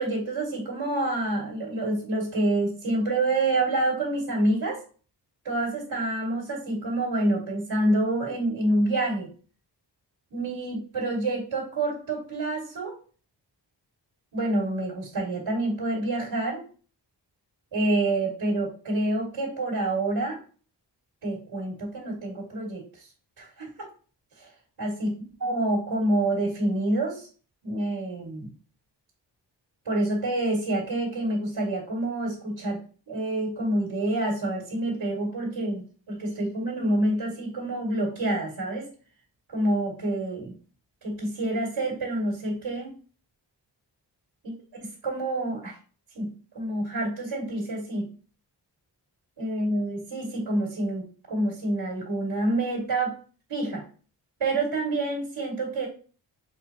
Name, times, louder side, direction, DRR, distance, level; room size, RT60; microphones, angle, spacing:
voice 1, 0.0-4.8 5.4-9.3 10.3-12.9 14.3-16.6 17.7-20.4 21.2-23.1 23.4-23.9 24.4-24.5 24.8-25.1 25.4-27.3 27.6-28.5 29.8-32.8 33.1-38.9 39.5-40.5 41.0-42.9 44.4-44.5 44.8-45.8 46.1-46.3 46.5-48.0 49.4-53.1 53.5-53.8 54.4-55.9, right 1 dB, 90° right, -5 dB, 2.1 m, -27 dB
6.1 x 2.8 x 2.8 m, 0.39 s
wide cardioid pair, 85°, 44 cm